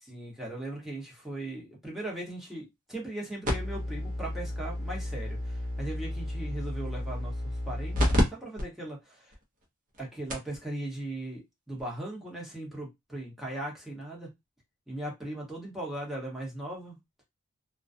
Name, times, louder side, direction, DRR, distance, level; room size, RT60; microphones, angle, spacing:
voice 1, 0.1-7.3 7.7-9.2 10.0-14.3 14.9-17.0, right 1 dB, ahead, 0.8 m, -38 dB
sound 1, 3.4-8.2 8.6-8.7 9.3-9.4 10.0-10.1 10.3-10.6 11.8-11.9, left 1 dB, 40° right, 0.7 m, -31 dB
2.3 x 2.2 x 2.5 m
head